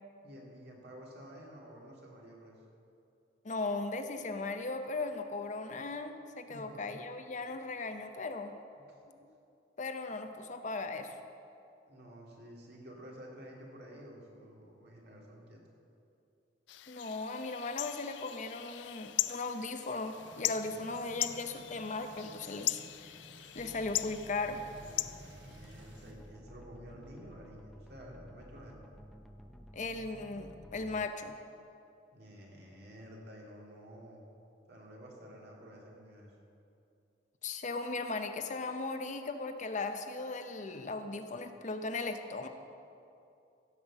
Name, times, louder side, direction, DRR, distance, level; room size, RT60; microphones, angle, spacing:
voice 1, 0.2-2.6 6.5-7.3 8.8-9.1 11.9-15.6 20.6-20.9 24.8-28.9 32.1-34.2 34.7-36.4, equal, 60° right, -2 dB, 2.3 m, -51 dB
voice 2, 3.4-8.5 9.8-11.2 16.9-23.2 23.5-24.6 29.7-31.3 37.4-42.5, left 3 dB, 40° left, 7 dB, 0.6 m, -37 dB
sound 1, 16.7-26.1, left 15 dB, 75° left, 0.3 m, -39 dB
sound 2, 20.2-26.1, right 2 dB, 80° right, 1.0 m, -56 dB
sound 3, 23.6-31.1, equal, ahead, 0.5 m, -53 dB
15.5 x 5.8 x 7.2 m, 2.7 s
head